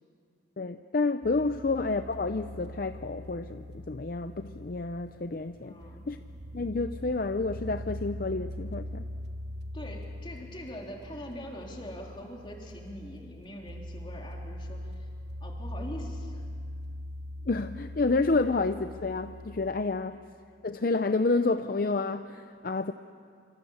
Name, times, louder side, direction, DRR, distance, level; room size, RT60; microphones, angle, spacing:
voice 1, 0.6-5.7 6.1-6.2 6.5-9.0 17.5-20.2 20.6-22.9, left 3 dB, 50° left, 9 dB, 0.6 m, -29 dB
sound 1, 1.2-19.7, equal, 65° right, 1.2 m, -41 dB
voice 2, 5.6-6.1 9.7-15.1 15.4-16.4, left 1 dB, 25° left, 0 dB, 3.5 m, -43 dB
27.0 x 25.5 x 7.2 m, 2.2 s
head